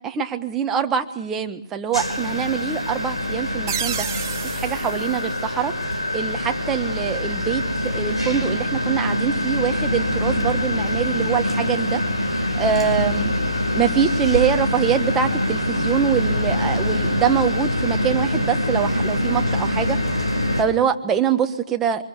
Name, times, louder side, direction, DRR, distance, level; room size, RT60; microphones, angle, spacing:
voice 1, 0.0-4.1 4.4-5.7 6.1-7.6 7.9-12.0 12.6-13.3 13.7-20.0 20.6-22.0, right 8 dB, 10° right, 6 dB, 1.4 m, -24 dB
sound 1, 1.9-20.6, left 1 dB, 80° left, 5.7 m, -24 dB
sound 2, 3.7-6.2, right 10 dB, 30° right, 2.4 m, -32 dB
25.0 x 22.0 x 6.8 m, 0.74 s
figure-of-eight pair, 140°, 3 cm